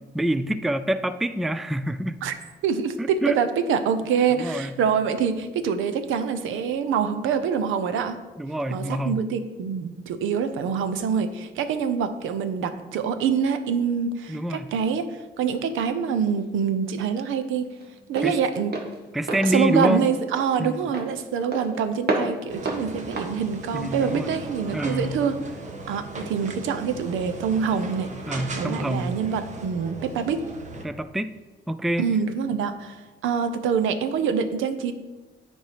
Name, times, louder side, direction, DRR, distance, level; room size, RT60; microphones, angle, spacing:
voice 1, 0.1-2.2 3.0-3.4 4.3-4.8 8.4-9.3 14.3-14.7 18.2-18.4 19.1-20.1 20.6-20.8 23.7-24.4 24.7-25.2 28.3-29.2 30.8-31.4 31.7-32.1, right 1 dB, ahead, 12 dB, 0.3 m, -26 dB
voice 2, 2.6-8.2 8.7-17.7 18.1-18.7 19.4-25.3 25.9-28.1 28.6-30.4 32.0-34.9, right 7 dB, 85° right, 10 dB, 0.7 m, -25 dB
Walk footsteps, 15.9-24.6, right 2 dB, 55° right, 1.5 m, -33 dB
sound 1, 22.5-30.8, right 2 dB, 35° right, 1.1 m, -38 dB
8.9 x 4.5 x 4.9 m, 1.2 s
cardioid pair, 90°, 20 cm